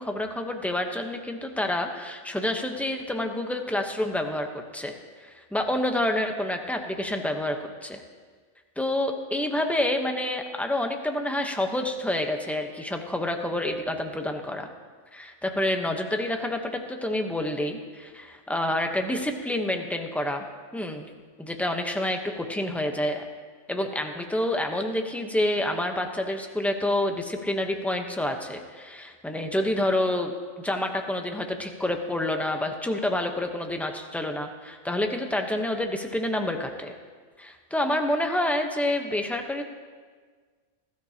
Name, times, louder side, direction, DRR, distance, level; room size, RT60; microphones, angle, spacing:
voice 1, 0.0-5.0 5.2-8.0 8.8-14.7 15.1-20.4 20.7-21.1 21.4-23.2 23.7-36.9 37.4-39.6, left 1 dB, ahead, 4 dB, 0.7 m, -28 dB
20.5 x 13.0 x 2.9 m, 1.5 s
omnidirectional pair, 1.4 m